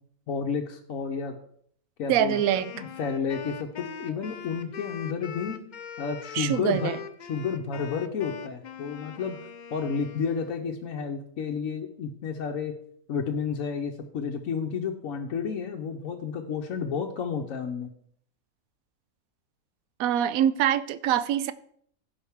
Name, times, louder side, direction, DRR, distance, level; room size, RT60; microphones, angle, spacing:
voice 1, 0.3-1.3 2.0-2.4 2.7-5.6 6.0-7.0 7.3-9.4 9.7-12.7 13.1-17.9, left 6 dB, 70° left, 1.2 m, -31 dB
voice 2, 2.1-2.7 6.3-7.0 20.0-21.5, right 10 dB, 75° right, 1.0 m, -24 dB
Wind instrument woodwind instrument, 2.3-10.7, left 7 dB, 50° left, 0.5 m, -41 dB
15.5 x 5.6 x 3.5 m
omnidirectional pair, 1.6 m